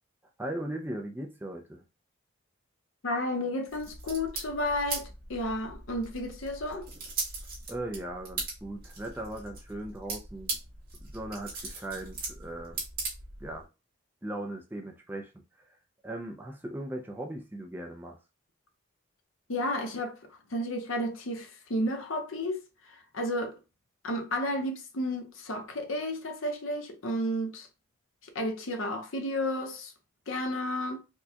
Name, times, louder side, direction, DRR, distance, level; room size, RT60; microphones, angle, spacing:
voice 1, 0.4-1.8 7.7-10.6 11.1-12.8 13.4-13.7 14.2-15.3 16.0-18.2, right 1 dB, 10° right, 0.4 m, -38 dB
voice 2, 3.0-6.9 19.5-20.2 20.5-23.6 24.0-27.7 28.3-29.9 30.3-31.0, left 1 dB, 75° left, 0.8 m, -32 dB
sound 1, 3.7-13.6, right 3 dB, 45° right, 1.5 m, -39 dB
4.4 x 2.2 x 2.8 m
head